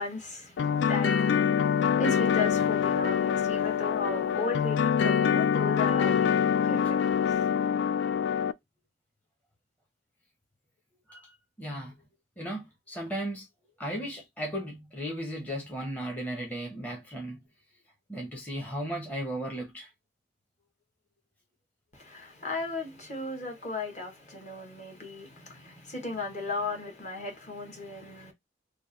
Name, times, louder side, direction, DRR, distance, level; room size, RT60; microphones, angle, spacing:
voice 1, 0.0-6.4 6.7-7.2 21.9-28.3, left 3 dB, 45° left, 1.4 m, -36 dB
sound 1, 0.6-8.5, left 7 dB, 85° left, 0.3 m, -25 dB
voice 2, 11.6-12.0 12.4-13.5 13.8-17.5 18.1-19.9, right 1 dB, 10° left, 0.8 m, -36 dB
3.5 x 2.2 x 4.0 m
head